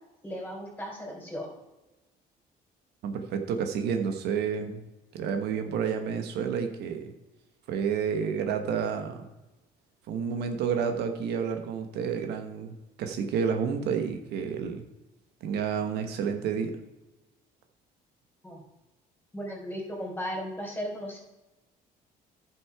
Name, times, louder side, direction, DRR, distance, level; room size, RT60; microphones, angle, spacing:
voice 1, 0.2-1.5 18.4-18.6 19.3-21.2, equal, 10° left, 0 dB, 3.6 m, -36 dB
voice 2, 3.0-4.8 5.1-7.1 7.7-9.3 10.1-14.8 15.4-16.8, right 6 dB, 75° right, 6 dB, 1.2 m, -30 dB
11.0 x 6.0 x 4.8 m, 1.0 s
cardioid pair, 110°, 17 cm